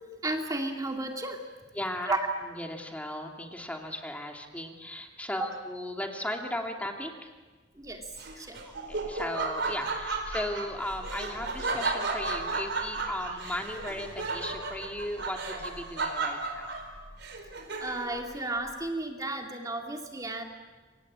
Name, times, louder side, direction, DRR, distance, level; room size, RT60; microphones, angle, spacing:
voice 1, 0.2-1.4 2.1-2.2 5.4-5.5 7.8-8.1 8.4-8.6 17.8-20.4, right 2 dB, 20° right, 2 dB, 2.3 m, -33 dB
voice 2, 1.7-2.2 2.4-7.3 8.3-16.7, left 1 dB, 10° left, 2 dB, 2.5 m, -36 dB
Laughter, 8.1-18.2, right 3 dB, 65° right, 4.7 m, -34 dB
28.5 x 24.5 x 8.7 m, 1.3 s
head